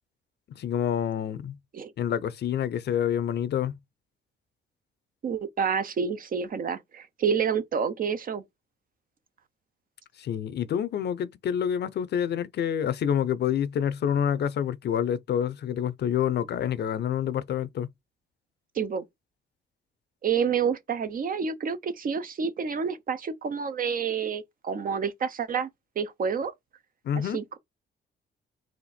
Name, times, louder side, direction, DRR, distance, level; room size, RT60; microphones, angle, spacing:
voice 1, 0.5-1.6 2.0-3.8 10.2-17.9 27.0-27.4, left 9 dB, 60° left, 0.6 m, -27 dB
voice 2, 5.2-8.4 18.7-19.0 20.2-25.7 26.0-26.5 27.3-27.6, right 6 dB, 45° right, 0.7 m, -28 dB
4.3 x 2.6 x 4.2 m
cardioid pair, 90°, 20 cm